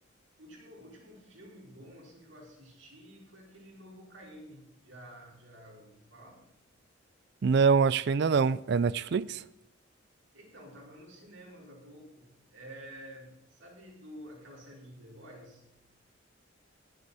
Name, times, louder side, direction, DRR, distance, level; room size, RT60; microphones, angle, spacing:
voice 1, 0.4-6.5 10.3-15.7, equal, 75° right, 4.4 m, -50 dB
voice 2, 7.4-9.4, right 5 dB, 55° right, 0.4 m, -25 dB
19.5 x 7.9 x 4.2 m
head